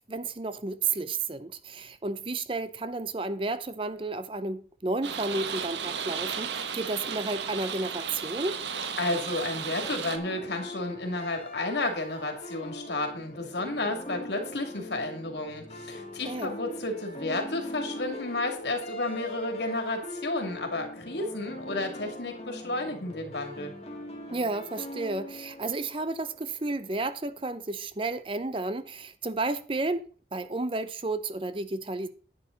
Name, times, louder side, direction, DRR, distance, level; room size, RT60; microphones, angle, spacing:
voice 1, 0.1-8.6 16.3-16.5 24.3-30.0 30.3-32.1, right 3 dB, 30° right, 0.6 m, -32 dB
sound 1, 5.0-10.2, right 6 dB, 80° right, 1.1 m, -34 dB
voice 2, 9.0-23.7, left 2 dB, 75° left, 2.6 m, -32 dB
sound 2, 9.8-26.7, left 1 dB, 35° left, 2.2 m, -41 dB
10.5 x 9.0 x 4.0 m
head